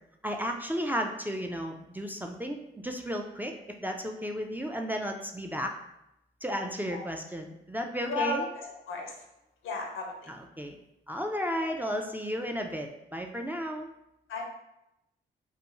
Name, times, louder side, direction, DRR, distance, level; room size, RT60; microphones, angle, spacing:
voice 1, 0.2-3.5 3.8-5.7 6.4-8.4 10.3-10.8 11.1-13.9, equal, 10° right, 2 dB, 0.3 m, -33 dB
voice 2, 8.0-9.2 9.6-10.3 12.0-12.1 14.3-14.4, left 3 dB, 75° left, 1 dB, 0.6 m, -34 dB
2.3 x 2.3 x 2.9 m, 0.87 s
supercardioid pair, 40°, 21 cm